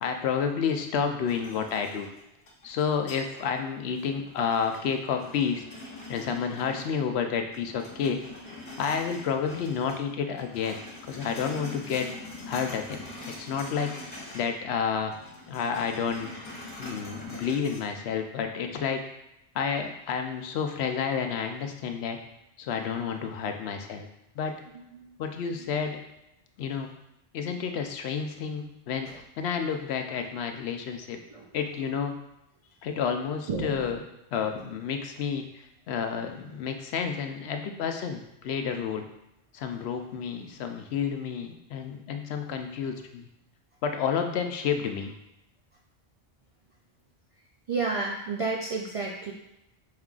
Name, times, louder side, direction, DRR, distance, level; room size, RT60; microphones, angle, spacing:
voice 1, 0.0-2.1 2.6-5.6 6.1-8.2 8.8-10.8 11.1-12.1 12.5-13.1 13.4-13.9 14.3-15.1 15.5-16.3 16.8-19.0 19.5-22.2 22.6-24.1 24.4-24.5 25.2-26.0 26.6-26.9 27.3-29.1 29.4-31.2 31.5-32.1 32.8-34.0 34.3-39.1 39.5-43.3 43.8-45.1, left 6 dB, 80° left, 5 dB, 0.8 m, -30 dB
sound 1, 1.3-3.6 4.0-7.2 7.5-10.0 10.3-14.6 14.8-17.8, left 2 dB, 60° left, 1.1 m, -43 dB
voice 2, 24.7-25.1 25.6-25.7 29.0-29.2 31.3-31.5 33.5-34.0 38.6-38.7 47.7-49.3, right 3 dB, 60° right, -2 dB, 0.3 m, -32 dB
5.3 x 3.7 x 2.4 m, 0.88 s
omnidirectional pair, 1.1 m